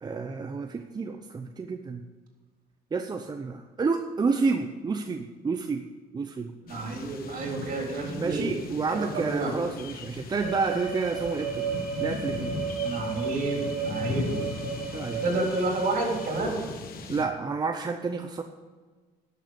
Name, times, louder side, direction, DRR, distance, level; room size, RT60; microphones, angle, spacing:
voice 1, 0.0-2.0 2.9-5.8 6.1-6.5 8.1-11.6 12.0-12.5 14.9-15.5 17.1-18.4, right 4 dB, 25° right, 6 dB, 0.7 m, -30 dB
sound 1, 6.7-17.2, left 4 dB, 60° left, 1.3 m, -38 dB
voice 2, 6.7-8.5 8.9-9.5 12.8-14.3 15.2-16.6, right 2 dB, 55° right, 0 dB, 3.8 m, -29 dB
sound 2, 10.4-16.4, right 6 dB, ahead, 4.1 m, -34 dB
11.5 x 6.9 x 8.1 m, 1.4 s
cardioid pair, 110°, 17 cm